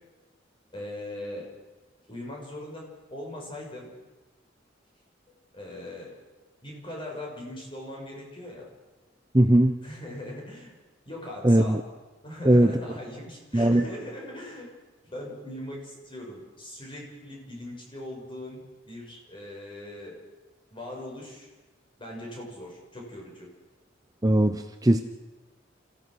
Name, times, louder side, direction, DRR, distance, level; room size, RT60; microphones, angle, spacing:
voice 1, 0.7-1.5 2.1-3.9 5.5-6.1 6.6-8.7 9.8-10.7 11.1-11.9 12.2-14.7 15.0-20.2 20.7-21.5 22.0-23.5, left 1 dB, 30° left, -1 dB, 6.2 m, -40 dB
voice 2, 9.3-9.7 11.4-11.8 12.4-12.7 13.5-13.8 24.2-25.0, right 1 dB, 20° right, 8 dB, 0.7 m, -19 dB
28.0 x 15.5 x 6.3 m, 1.2 s
head